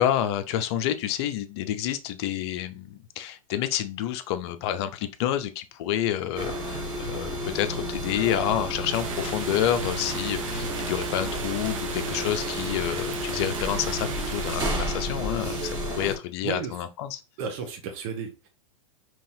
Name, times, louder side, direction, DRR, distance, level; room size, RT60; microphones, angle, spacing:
voice 1, 0.0-17.2, left 11 dB, 50° left, 0.6 m, -29 dB
sound 1, 6.3-16.2, equal, 25° right, 1.7 m, -31 dB
sound 2, 8.9-14.6, right 6 dB, 65° right, 0.9 m, -37 dB
voice 2, 17.4-18.5, right 6 dB, 45° right, 1.1 m, -33 dB
5.5 x 3.0 x 2.7 m
hypercardioid pair, 100°, 18 cm